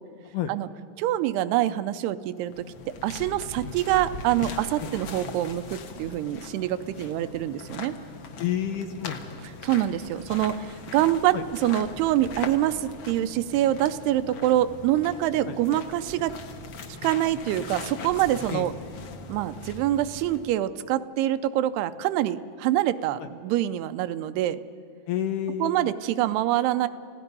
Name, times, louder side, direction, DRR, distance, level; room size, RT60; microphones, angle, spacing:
voice 1, 1.0-2.7 3.0-7.9 9.6-10.7 10.9-16.4 17.0-18.7 19.3-24.6 25.6-26.9, right 13 dB, 85° right, 12 dB, 2.8 m, -25 dB
sound 1, 2.4-20.6, left 4 dB, 60° left, 1.6 m, -40 dB
voice 2, 8.4-9.2 11.0-11.4 15.5-15.6 18.5-18.7 23.2-23.3 25.1-25.9, left 10 dB, 75° left, 7 dB, 1.9 m, -30 dB
29.5 x 17.0 x 5.4 m, 2.6 s
omnidirectional pair, 4.6 m